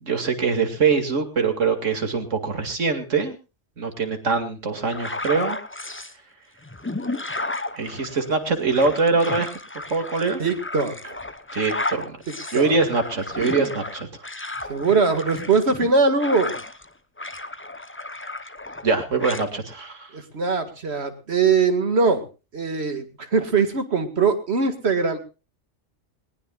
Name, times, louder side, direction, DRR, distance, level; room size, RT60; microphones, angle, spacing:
voice 1, 0.0-3.4 3.8-5.6 7.8-9.5 9.9-10.4 11.5-12.2 12.5-14.2 18.8-20.1, right 4 dB, 75° right, 6 dB, 2.6 m, -23 dB
sound 1, 4.9-6.1 6.6-16.9 17.2-18.9 19.2-19.5, left 2 dB, 15° left, 0.6 m, -33 dB
voice 2, 10.4-11.2 12.3-12.8 14.7-16.5 20.1-22.2 22.5-25.2, right 4 dB, 55° right, 8 dB, 2.1 m, -22 dB
20.0 x 19.0 x 2.4 m, 0.31 s
omnidirectional pair, 1.3 m